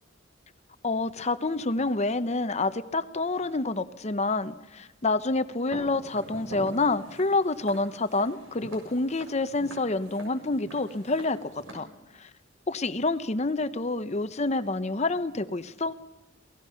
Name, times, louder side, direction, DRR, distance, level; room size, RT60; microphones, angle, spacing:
voice 1, 0.8-11.9 12.1-12.3 12.7-15.9, left 3 dB, 35° left, 12 dB, 0.8 m, -28 dB
Walk footsteps, 5.7-11.7, right 1 dB, 80° right, 7.1 m, -45 dB
28.0 x 17.5 x 5.7 m, 1.0 s
head